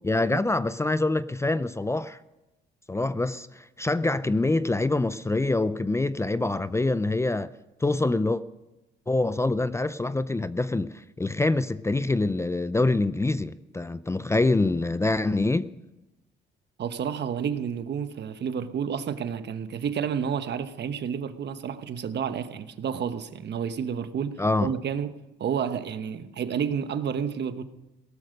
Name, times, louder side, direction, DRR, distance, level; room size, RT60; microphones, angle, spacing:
voice 1, 0.0-2.2 2.9-7.5 7.8-8.4 9.1-15.7 24.4-24.7, left 2 dB, 15° left, 0.5 m, -25 dB
voice 2, 16.8-25.1 25.4-27.6, right 7 dB, 60° right, 1.1 m, -30 dB
18.0 x 13.0 x 5.2 m
cardioid pair, 90°, 20 cm